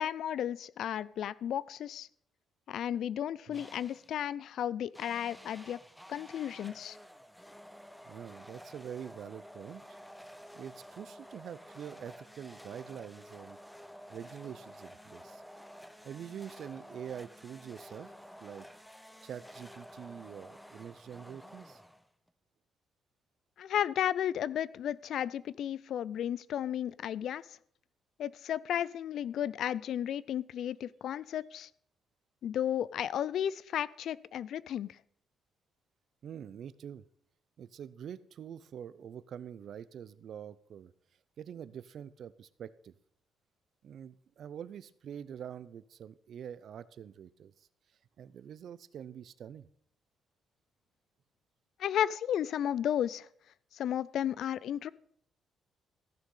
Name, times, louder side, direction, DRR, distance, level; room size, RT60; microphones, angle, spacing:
voice 1, 0.0-2.1 2.7-5.8 6.1-7.0 23.6-27.4 28.2-31.7 32.4-35.0 51.8-53.3 53.7-54.9, left 10 dB, 70° left, 21 dB, 0.3 m, -33 dB
sound 1, 3.5-4.2 4.9-22.3, equal, ahead, 0.6 m, -51 dB
voice 2, 8.0-10.0 10.5-13.6 14.1-15.4 16.0-18.1 18.4-18.7 19.2-21.8 36.2-37.0 37.6-40.9 41.4-42.9 43.8-47.7 48.2-49.7, right 9 dB, 60° right, 17 dB, 0.5 m, -45 dB
14.5 x 6.5 x 5.4 m, 0.65 s
cardioid pair, 130°, 0 cm